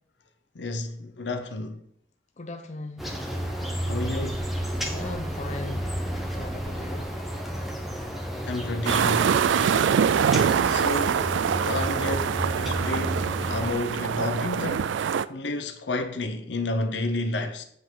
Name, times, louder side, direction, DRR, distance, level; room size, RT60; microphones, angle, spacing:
voice 1, 0.5-1.8 3.9-4.4 8.4-9.3 10.6-11.2 11.7-14.9 15.3-17.6, left 2 dB, 75° left, 0.8 m, -31 dB
voice 2, 2.4-3.1 4.0-4.4 4.9-5.8 6.3-7.1, left 2 dB, 40° left, 0.6 m, -38 dB
sound 1, 3.0-13.7, equal, ahead, 1.0 m, -31 dB
sound 2, 8.9-15.3, right 7 dB, 85° right, 0.3 m, -24 dB
8.2 x 4.9 x 3.9 m
head